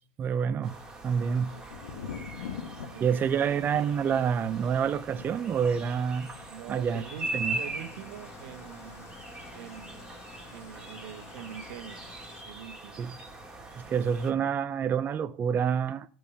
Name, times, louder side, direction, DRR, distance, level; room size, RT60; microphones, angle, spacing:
voice 1, 0.2-0.8 1.0-1.5 3.0-6.3 6.7-7.0 7.3-7.6 13.0-13.1 13.8-16.1, right 7 dB, 30° right, 0.5 m, -27 dB
sound 1, 0.6-14.3, right 2 dB, 10° right, 2.4 m, -41 dB
voice 2, 1.4-2.2 2.9-3.7 6.5-7.3 7.5-9.1 9.5-10.1 10.5-12.1 12.4-13.1, right 10 dB, 70° right, 1.1 m, -45 dB
Thunder, 1.7-11.4 11.6-12.3, left 7 dB, 80° left, 1.3 m, -46 dB
Engine starting / Idling, 7.2-12.4, left 6 dB, 40° left, 1.2 m, -51 dB
12.5 x 4.6 x 7.0 m
hypercardioid pair, 105°, 7 cm